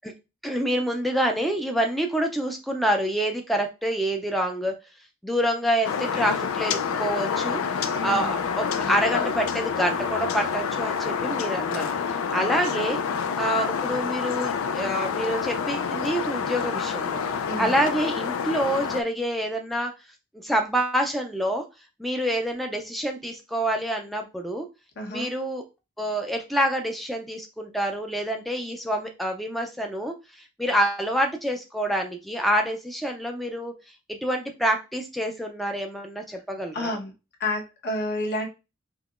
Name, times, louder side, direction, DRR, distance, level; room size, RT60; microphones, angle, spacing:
voice 1, 0.4-4.8 5.2-13.0 13.4-19.9 20.4-21.6 22.0-24.7 25.1-25.6 26.0-33.7 34.1-36.9, equal, ahead, 3 dB, 0.4 m, -27 dB
Ambiente - calle sin trafico, 5.8-19.0, left 6 dB, 90° left, 0.4 m, -28 dB
voice 2, 7.9-8.4 8.7-8.9 12.3-12.7 17.5-17.7 25.0-25.3 36.7-37.1 37.4-38.5, left 1 dB, 55° left, 1 dB, 1.0 m, -30 dB
5.3 x 2.8 x 2.4 m, 0.27 s
head